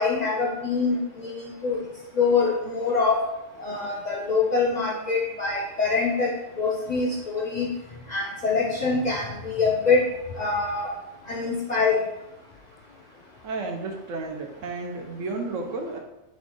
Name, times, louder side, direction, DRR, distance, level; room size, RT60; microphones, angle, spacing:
voice 1, 0.0-1.8 2.2-3.2 3.6-6.3 6.6-7.7 8.1-10.0 10.4-10.9 11.3-12.0, left 4 dB, 55° left, -2 dB, 0.5 m, -24 dB
voice 2, 13.4-16.0, right 3 dB, 85° right, 3 dB, 1.0 m, -32 dB
4.3 x 2.5 x 3.7 m, 0.95 s
omnidirectional pair, 1.3 m